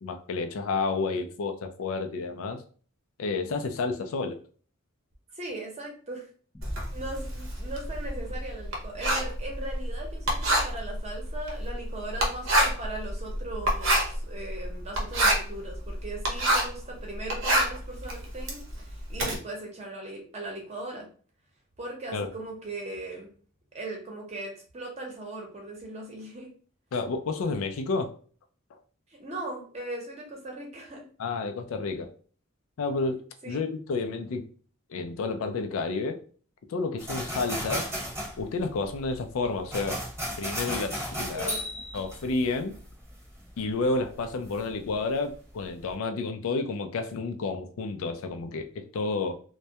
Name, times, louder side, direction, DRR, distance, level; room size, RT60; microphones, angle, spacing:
voice 1, 0.0-2.6 3.2-4.4 22.1-22.3 26.9-28.2 31.2-32.1 32.8-34.4 34.9-36.2 36.7-37.9 38.4-40.0 40.4-41.6 41.9-42.8 43.6-49.4, left 3 dB, 80° left, 6 dB, 0.4 m, -30 dB
voice 2, 5.3-6.3 6.9-21.1 21.8-23.3 23.7-26.5 29.1-31.0 33.4-33.7 41.3-41.7, right 2 dB, 35° right, 0 dB, 0.8 m, -39 dB
Boom, 6.5-9.5, equal, 15° left, 0.4 m, -43 dB
Writing, 6.6-16.8 17.2-19.3, right 1 dB, 65° right, 0.7 m, -27 dB
sound 1, 37.0-45.2 45.6-45.9, equal, 15° right, 1.0 m, -36 dB
2.2 x 2.1 x 2.7 m, 0.43 s
head